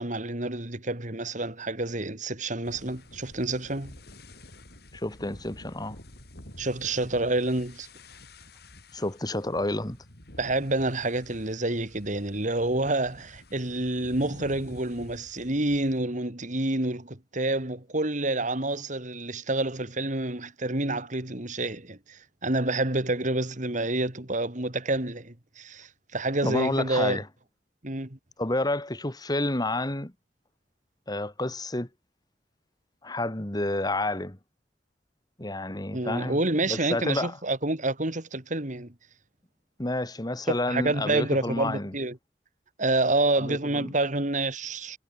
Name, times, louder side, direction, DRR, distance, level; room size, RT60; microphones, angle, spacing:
voice 1, 0.0-3.9 6.6-7.9 10.4-27.2 27.8-28.2 35.9-38.9 40.5-42.2 42.8-45.0, right 2 dB, 45° right, 3.1 m, -28 dB
sound 1, 2.6-16.0, left 1 dB, 65° left, 7.1 m, -49 dB
voice 2, 4.9-6.0 8.9-10.0 26.4-27.2 28.4-30.1 31.1-31.9 33.0-34.4 35.4-37.4 39.8-41.9 43.4-43.9, left 2 dB, 25° left, 1.9 m, -30 dB
head